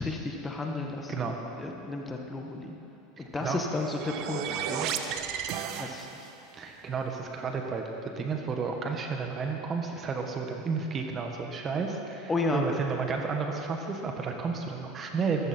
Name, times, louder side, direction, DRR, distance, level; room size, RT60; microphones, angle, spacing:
voice 1, 0.0-2.8 3.2-4.9 5.8-6.1 12.3-12.6, left 3 dB, 15° left, 2 dB, 1.5 m, -33 dB
voice 2, 3.2-3.6 6.5-15.5, right 5 dB, 30° right, 3 dB, 1.6 m, -32 dB
sound 1, 3.4-6.4, right 8 dB, 55° right, 0.9 m, -34 dB
14.5 x 14.5 x 4.5 m, 2.8 s
hypercardioid pair, 100°, 0 cm